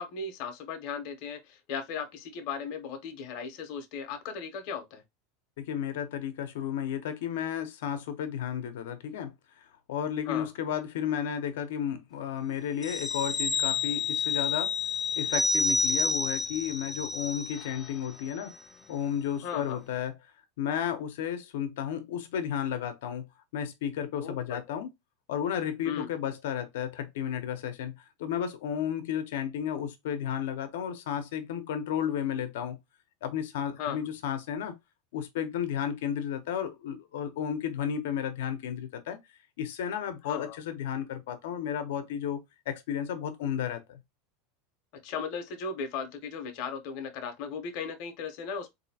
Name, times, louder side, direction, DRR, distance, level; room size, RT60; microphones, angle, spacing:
voice 1, 0.0-5.0 10.3-10.5 19.4-19.8 24.2-24.6 25.8-26.1 33.8-34.0 40.2-40.6 45.0-48.7, left 6 dB, 45° left, 0.8 m, -36 dB
voice 2, 5.6-14.7 15.2-18.6 18.9-20.1 20.6-23.2 23.5-24.9 25.3-27.9 28.2-32.8 33.2-34.8 35.1-39.2 39.6-42.4 42.7-44.0, left 9 dB, 80° left, 0.7 m, -33 dB
sound 1, 12.8-17.9 18.3-18.4, left 3 dB, 10° left, 0.4 m, -29 dB
3.9 x 2.7 x 2.7 m
supercardioid pair, 170°, 0 cm